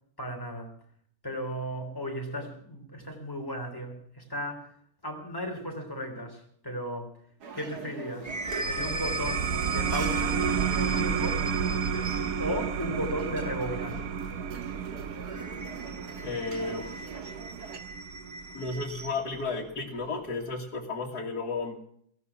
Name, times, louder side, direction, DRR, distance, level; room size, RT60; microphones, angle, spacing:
voice 1, 0.2-0.7 1.2-4.7 5.0-7.2 7.5-8.3 8.7-10.4 10.7-11.4 12.4-14.0, equal, 15° left, 3 dB, 3.1 m, -35 dB
sound 1, 7.4-17.8, right 5 dB, 85° right, 2.1 m, -43 dB
sound 2, 7.7-12.5 15.2-19.2, equal, 20° right, 0.5 m, -40 dB
sound 3, 8.3-19.4, right 7 dB, 70° right, 1.4 m, -32 dB
voice 2, 16.2-16.9 18.5-21.8, left 3 dB, 85° left, -3 dB, 2.2 m, -33 dB
17.0 x 14.5 x 5.9 m, 0.65 s
omnidirectional pair, 1.6 m